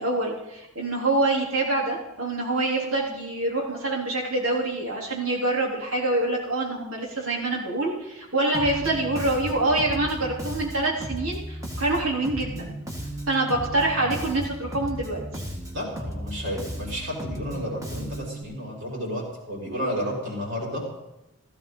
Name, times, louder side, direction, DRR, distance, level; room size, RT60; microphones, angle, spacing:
voice 1, 0.0-12.8 13.3-15.2, right 2 dB, 75° right, -2 dB, 3.8 m, -26 dB
Bass guitar, 8.5-18.4, right 1 dB, 15° right, 1.9 m, -35 dB
voice 2, 15.7-20.9, equal, 60° right, -2 dB, 5.6 m, -32 dB
16.5 x 15.0 x 4.0 m, 0.95 s
head